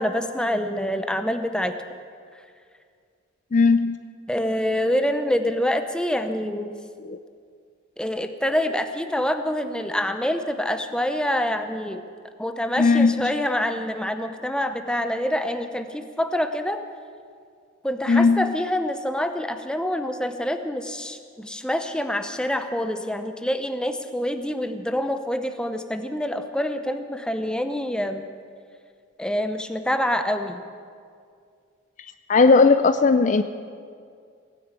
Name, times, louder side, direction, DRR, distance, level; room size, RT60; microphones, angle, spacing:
voice 1, 0.0-1.7 4.3-6.7 8.0-12.0 12.4-16.8 17.8-28.3 29.2-30.6, left 1 dB, 5° left, 7 dB, 0.7 m, -26 dB
voice 2, 3.5-4.0 7.0-7.2 12.8-13.3 18.1-18.5 32.3-33.4, left 4 dB, 40° left, 10 dB, 0.4 m, -17 dB
17.5 x 9.7 x 8.3 m, 2.2 s
head